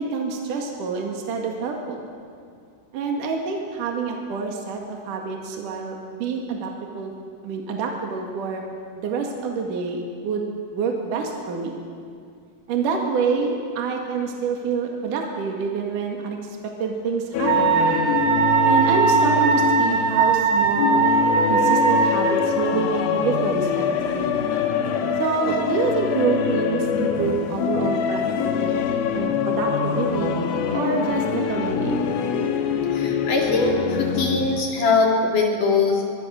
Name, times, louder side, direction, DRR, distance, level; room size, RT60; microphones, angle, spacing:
voice 1, 0.0-2.1 2.9-7.1 7.4-8.6 9.0-11.8 12.7-17.7 18.6-21.1 21.5-24.3 25.2-28.8 29.1-30.3 30.7-32.1, right 5 dB, 60° right, 1 dB, 3.3 m, -27 dB
sound 1, 17.3-34.6, left 7 dB, 70° left, 3.1 m, -24 dB
Wind instrument woodwind instrument, 17.4-22.4, right 5 dB, 90° right, 4.4 m, -19 dB
voice 2, 32.9-36.0, left 3 dB, 55° left, 0 dB, 4.6 m, -21 dB
23.5 x 23.5 x 6.5 m, 2.3 s
omnidirectional pair, 4.6 m